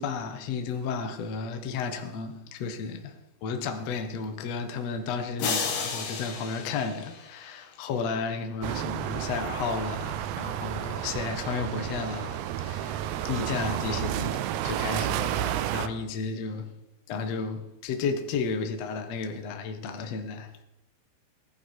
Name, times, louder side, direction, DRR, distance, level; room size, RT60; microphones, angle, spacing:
voice 1, 0.0-16.7 17.1-20.6, left 5 dB, 75° left, 1.5 m, -33 dB
sound 1, 5.4-7.7, left 5 dB, 55° left, 3.1 m, -33 dB
sound 2, 8.6-15.9, right 11 dB, 80° right, 2.7 m, -31 dB
19.0 x 11.5 x 4.7 m
omnidirectional pair, 5.4 m